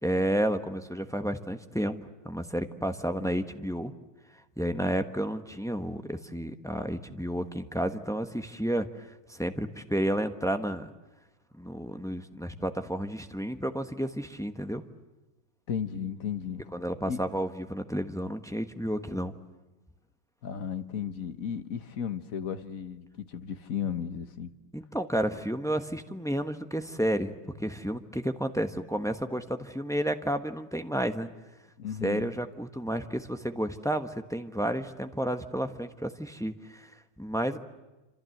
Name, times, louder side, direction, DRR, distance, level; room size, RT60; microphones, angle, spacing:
voice 1, 0.0-2.0 2.2-3.9 4.6-10.9 11.5-14.8 16.7-19.3 24.7-31.3 32.0-36.9 37.2-37.6, equal, ahead, 7 dB, 0.8 m, -31 dB
voice 2, 15.7-16.7 17.0-17.2 20.4-24.5 31.8-32.3, left 8 dB, 50° left, 10 dB, 1.5 m, -34 dB
28.0 x 27.0 x 7.9 m, 1.1 s
omnidirectional pair, 2.2 m